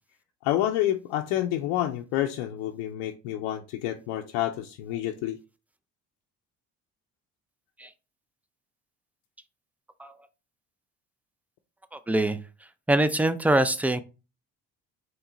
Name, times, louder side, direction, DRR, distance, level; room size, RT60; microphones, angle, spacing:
voice 1, 0.4-5.4, left 13 dB, 85° left, 0.6 m, -28 dB
voice 2, 12.1-12.4 12.9-14.0, right 1 dB, 5° right, 0.5 m, -23 dB
4.4 x 3.2 x 3.8 m
supercardioid pair, 65°, 38 cm